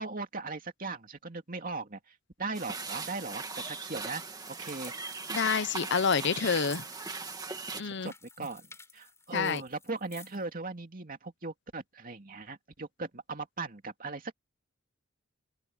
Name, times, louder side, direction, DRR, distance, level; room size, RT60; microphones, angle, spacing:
voice 1, 0.0-2.0 2.4-4.2 4.5-4.9 7.7-8.7 8.9-14.3, right 3 dB, 45° right, 2.5 m, -38 dB
sound 1, 2.5-7.8, right 4 dB, 20° right, 2.4 m, -39 dB
sound 2, 4.4-10.4, left 4 dB, 15° left, 4.5 m, -54 dB
voice 2, 5.3-6.8 7.8-8.1 9.3-9.6, left 6 dB, 60° left, 0.8 m, -28 dB
open air
head